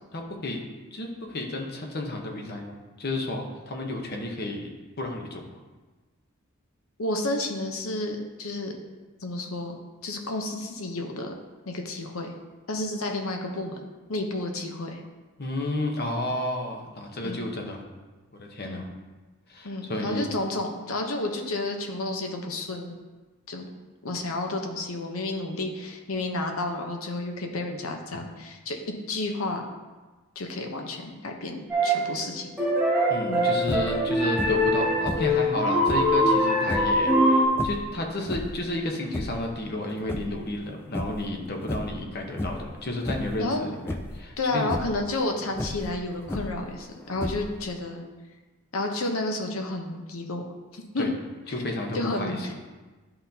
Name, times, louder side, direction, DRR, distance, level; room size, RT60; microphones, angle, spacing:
voice 1, 0.1-0.6 0.9-4.7 5.0-5.6 15.4-17.8 18.3-18.9 19.5-20.4 33.1-44.7 51.0-51.1 51.5-52.5, left 1 dB, 50° left, 2 dB, 0.9 m, -32 dB
voice 2, 7.0-8.8 9.2-11.3 11.7-12.3 12.7-13.7 14.1-15.0 17.2-17.4 18.6-18.8 19.6-22.9 23.5-23.7 24.0-28.8 29.1-29.7 30.4-32.5 33.3-33.5 43.4-43.6 44.4-48.0 48.7-50.4 50.7-51.1 51.9-52.4, left 2 dB, 90° left, 3 dB, 0.9 m, -31 dB
sound 1, 31.7-32.1 32.6-37.5, equal, 5° right, 1.5 m, -23 dB
sound 2, 33.6-34.0 34.4-34.8 35.0-36.2 36.6-37.0 37.5-38.7 39.0-39.5 39.9-40.7 40.9-41.3 41.6-42.0 42.4-42.7 43.0-43.4 43.9-44.2 44.6-45.0 45.5-46.7 47.2-47.7, left 1 dB, 10° left, 0.3 m, -33 dB
11.0 x 3.9 x 2.8 m, 1.3 s
head